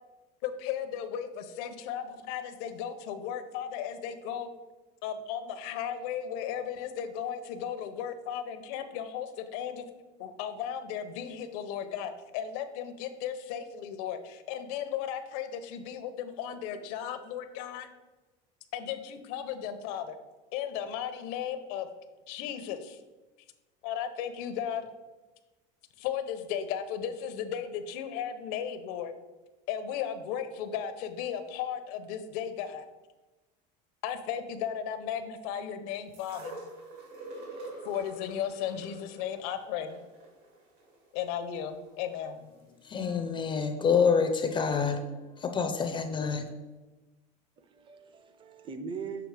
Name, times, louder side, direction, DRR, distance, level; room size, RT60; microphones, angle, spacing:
voice 1, 0.4-4.5 5.0-9.8 10.2-17.9 18.7-20.2 20.5-21.9 22.3-23.0 23.8-24.9 26.0-29.1 29.7-32.9 34.0-36.6 37.8-40.0 41.1-42.5, left 9 dB, 80° left, 0.7 m, -35 dB
sound 1, 36.1-42.2 43.0-43.1, right 2 dB, 75° right, 2.0 m, -46 dB
voice 2, 42.8-45.0 45.4-46.4, left 6 dB, 25° left, 0.4 m, -27 dB
voice 3, 47.6-49.3, right 5 dB, 25° right, 0.5 m, -41 dB
7.0 x 3.6 x 4.7 m
cardioid pair, 155°, 20 cm